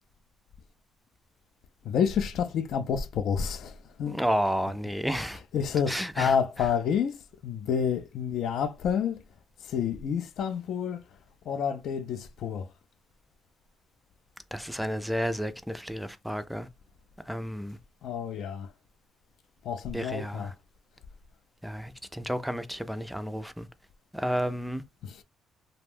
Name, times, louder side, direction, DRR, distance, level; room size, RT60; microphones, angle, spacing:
voice 1, 1.8-4.2 5.1-5.3 5.5-9.2 9.6-11.0 11.5-12.7 18.0-18.7 19.6-20.5 25.0-25.2, left 7 dB, 75° left, 0.4 m, -29 dB
voice 2, 4.1-5.4 5.9-6.3 14.5-16.7 17.3-17.8 19.9-20.5 21.6-23.7 24.1-24.8, equal, ahead, 0.3 m, -31 dB
2.5 x 2.2 x 3.3 m
cardioid pair, 90°, 0 cm